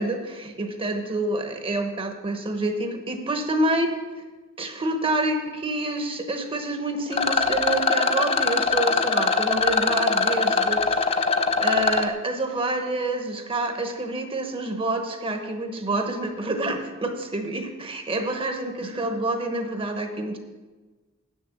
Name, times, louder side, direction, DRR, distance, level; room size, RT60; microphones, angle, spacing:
voice 1, 0.0-3.9 4.6-11.3 11.6-20.4, right 2 dB, 25° right, 6 dB, 0.9 m, -28 dB
Rattle, 7.1-12.1, left 5 dB, 30° left, 0.5 m, -22 dB
7.7 x 6.6 x 7.2 m, 1.3 s
head